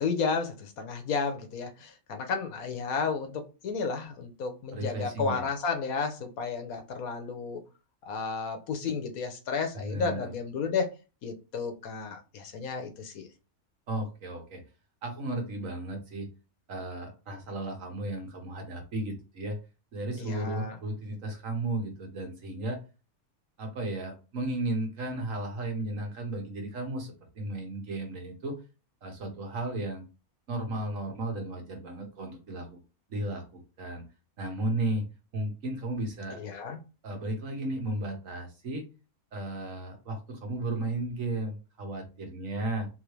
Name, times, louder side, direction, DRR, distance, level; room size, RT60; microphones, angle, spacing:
voice 1, 0.0-7.6 8.0-10.9 11.2-13.3 20.2-20.8 36.4-36.8, left 5 dB, 75° left, 1.3 m, -32 dB
voice 2, 4.7-5.5 9.7-10.3 13.9-14.6 15.0-16.3 16.7-19.6 19.9-22.8 23.6-28.6 29.0-30.0 30.5-32.8 33.1-34.0 34.4-35.0 35.3-36.4 37.0-38.8 39.3-42.9, right 2 dB, 60° right, 1.5 m, -34 dB
3.8 x 3.1 x 3.2 m
omnidirectional pair, 1.5 m